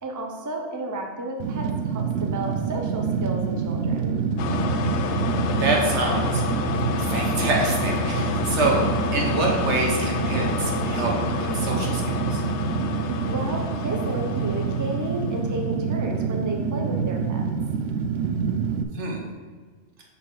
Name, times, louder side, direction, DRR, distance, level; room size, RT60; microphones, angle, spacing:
voice 1, 0.0-4.2 13.2-17.4, right 1 dB, 20° right, 1 dB, 0.6 m, -32 dB
Fire, 1.4-18.8, right 6 dB, 90° right, 0.9 m, -27 dB
sound 1, 4.4-15.6, left 6 dB, 75° left, 0.9 m, -29 dB
voice 2, 5.6-6.4 7.0-8.9 9.1-12.4 18.9-19.2, right 2 dB, 70° right, 0 dB, 1.4 m, -26 dB
5.6 x 4.6 x 6.2 m, 1.5 s
omnidirectional pair, 1.2 m